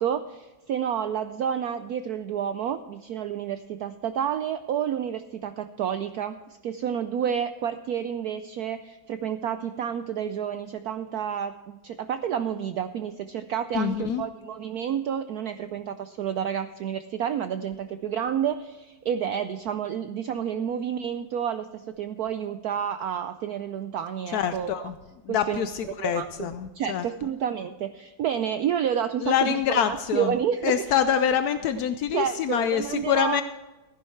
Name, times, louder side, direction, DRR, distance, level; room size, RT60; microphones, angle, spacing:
voice 1, 0.0-24.9 25.3-31.0 32.1-33.4, right 9 dB, 80° right, 10 dB, 0.8 m, -30 dB
voice 2, 13.7-14.2 24.3-24.9 25.3-27.0 29.2-30.3 30.6-33.4, left 8 dB, 75° left, 10 dB, 0.8 m, -25 dB
15.0 x 10.0 x 4.5 m, 1.2 s
omnidirectional pair, 2.2 m